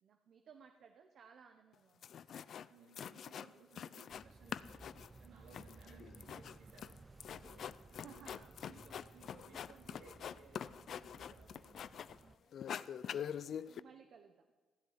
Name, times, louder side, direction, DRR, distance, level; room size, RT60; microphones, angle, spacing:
voice 1, 0.0-2.1 6.2-6.4 7.9-8.6 13.2-14.5, right 7 dB, 65° right, 5 dB, 1.0 m, -60 dB
sound 1, 1.7-1.8 2.0-2.7 2.9-4.2 4.5-12.2 12.5-13.8, left 8 dB, 60° left, 0.4 m, -45 dB
voice 2, 2.7-4.8 5.2-7.0 7.4-7.7 8.0-8.3 8.6-12.5, right 5 dB, 85° right, -1 dB, 3.3 m, -62 dB
sound 2, 4.1-12.4, right 3 dB, 25° right, 0.5 m, -59 dB
14.5 x 8.1 x 9.7 m, 1.4 s
cardioid pair, 90°, 0 cm